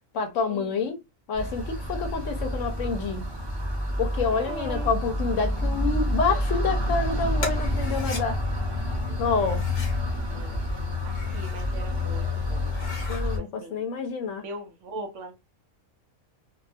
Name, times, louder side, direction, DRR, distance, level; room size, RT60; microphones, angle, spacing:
voice 1, 0.1-1.0 1.3-3.3 4.0-8.4 9.2-9.7 13.1-14.4, left 5 dB, 70° left, 0.9 m, -28 dB
sound 1, 1.3-13.4, left 1 dB, 20° right, 0.8 m, -28 dB
voice 2, 4.3-4.9 9.1-9.6 10.1-10.6 11.0-13.8 14.4-15.4, right 2 dB, 65° right, 0.9 m, -41 dB
sound 2, 7.4-8.2 9.3-10.0 10.9-11.7 12.1-12.2 12.6-13.2, left 3 dB, 40° left, 0.8 m, -38 dB
2.7 x 2.3 x 2.4 m
omnidirectional pair, 1.5 m